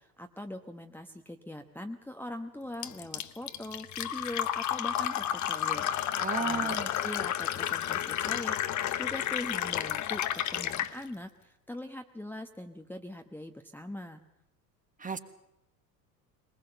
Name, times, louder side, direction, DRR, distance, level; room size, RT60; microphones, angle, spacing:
voice 1, 0.0-8.6 9.0-14.2, left 1 dB, 5° left, 4 dB, 1.1 m, -42 dB
Fill (with liquid), 2.8-10.9, left 11 dB, 40° left, 1.1 m, -31 dB
voice 2, 6.2-6.9 15.0-15.2, right 5 dB, 15° right, 10 dB, 1.5 m, -33 dB
21.5 x 20.5 x 6.9 m, 0.85 s
figure-of-eight pair, 70°, 47 cm